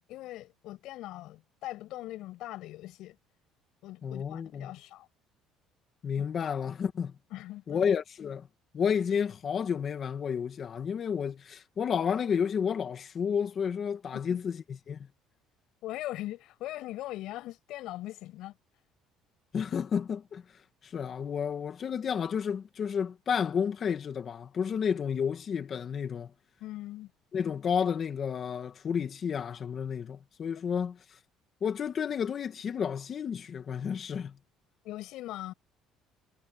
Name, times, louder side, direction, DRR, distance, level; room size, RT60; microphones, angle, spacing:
voice 1, 0.0-3.2 3.8-5.1 6.2-6.3 7.3-7.9 14.1-14.4 15.8-18.5 26.6-27.1 34.8-35.5, left 16 dB, 65° left, 6.0 m, -41 dB
voice 2, 4.0-4.7 6.0-7.1 7.7-8.5 8.7-15.1 19.5-20.4 20.8-26.3 27.3-31.0 31.6-34.4, left 7 dB, 35° left, 2.2 m, -31 dB
cardioid pair, 150°, 0 cm